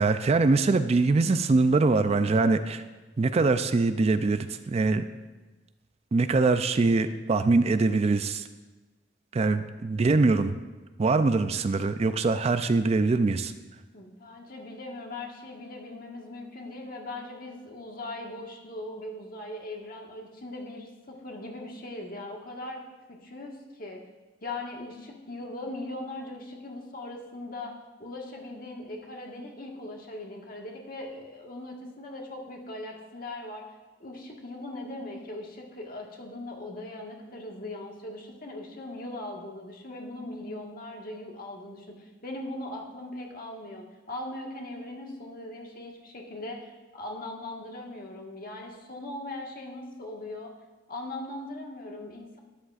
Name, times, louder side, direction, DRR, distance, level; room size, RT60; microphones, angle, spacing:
voice 1, 0.0-2.8 3.2-5.0 6.1-8.5 9.3-10.6 11.0-13.5, right 3 dB, 35° right, 10 dB, 0.4 m, -23 dB
voice 2, 13.9-22.8 23.1-24.0 24.4-27.7 28.0-33.6 34.0-50.5 50.9-52.4, left 2 dB, 50° left, 0 dB, 1.5 m, -39 dB
12.5 x 10.0 x 2.4 m, 1.2 s
head